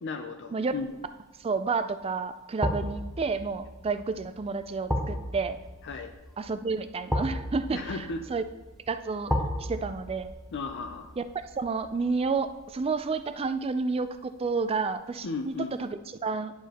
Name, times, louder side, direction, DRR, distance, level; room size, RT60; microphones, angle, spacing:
voice 1, 0.0-1.0 5.8-6.1 7.7-8.3 10.5-11.1 15.2-15.8, left 3 dB, 55° left, 5 dB, 0.5 m, -35 dB
sound 1, 0.8-1.2 2.6-13.6 13.9-14.1, equal, ahead, 0.7 m, -35 dB
voice 2, 1.4-5.6 6.4-7.8 8.3-8.4 8.9-9.3 9.6-10.3 11.2-11.3 11.6-15.5 15.8-16.5, right 4 dB, 25° right, 11 dB, 0.3 m, -30 dB
10.0 x 6.9 x 2.9 m, 1.1 s
head